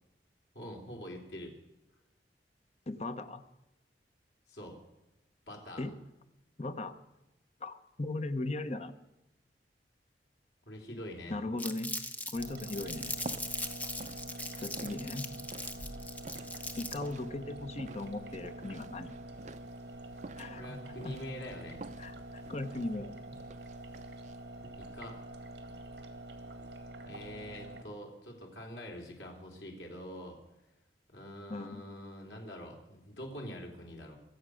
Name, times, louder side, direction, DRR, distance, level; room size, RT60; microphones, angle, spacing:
voice 1, 0.5-1.6 4.5-4.8 5.5-5.9 10.7-11.3 20.5-21.8 24.8-25.3 27.0-30.4 31.1-34.2, equal, 75° left, 0 dB, 3.5 m, -45 dB
voice 2, 2.9-3.4 5.8-5.9 6.6-6.9 7.6-8.9 11.3-11.9 12.3-13.1 14.6-15.3 16.8-19.1 20.4-20.8 21.0-21.2 22.0-23.2 31.5-31.8, left 2 dB, 40° left, 9 dB, 0.9 m, -38 dB
Crumpling crinkling, 11.6-17.1, left 2 dB, 10° left, 0.9 m, -40 dB
sound 1, 12.3-27.8, right 1 dB, 70° right, 2.1 m, -46 dB
sound 2, 13.0-26.9, right 3 dB, 45° right, 0.5 m, -51 dB
24.0 x 8.1 x 6.4 m, 0.94 s
head